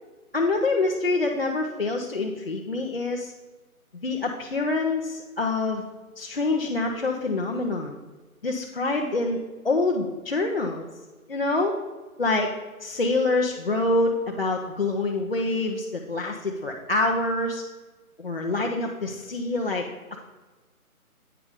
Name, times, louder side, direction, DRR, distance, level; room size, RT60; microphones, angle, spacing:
voice 1, 0.3-3.3 4.0-5.8 6.2-8.0 8.4-10.9 11.3-11.8 12.2-17.6 18.2-19.9, left 2 dB, 40° left, -1 dB, 0.7 m, -26 dB
8.7 x 5.2 x 5.0 m, 1.2 s
figure-of-eight pair, 160°, 44 cm